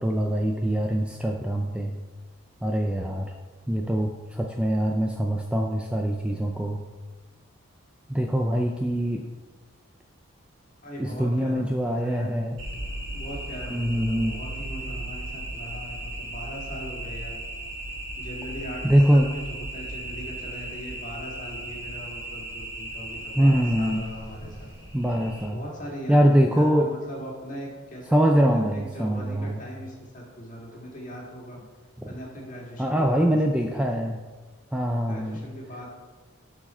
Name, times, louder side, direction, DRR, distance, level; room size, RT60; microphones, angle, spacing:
voice 1, 0.0-2.0 2.6-3.3 3.7-6.8 8.1-9.2 11.0-12.6 13.7-14.4 18.8-19.3 23.4-24.1 24.9-25.6 26.1-26.9 28.1-29.6 32.0-32.1 32.8-34.2 34.7-35.5, equal, 5° right, 1 dB, 0.3 m, -23 dB
voice 2, 10.8-12.3 13.1-17.4 18.2-24.7 25.5-31.6 32.1-34.0 35.1-35.9, equal, 35° left, -3 dB, 2.0 m, -40 dB
sound 1, 12.6-25.5, right 1 dB, 60° right, 1.8 m, -36 dB
11.5 x 4.7 x 4.3 m, 1.3 s
head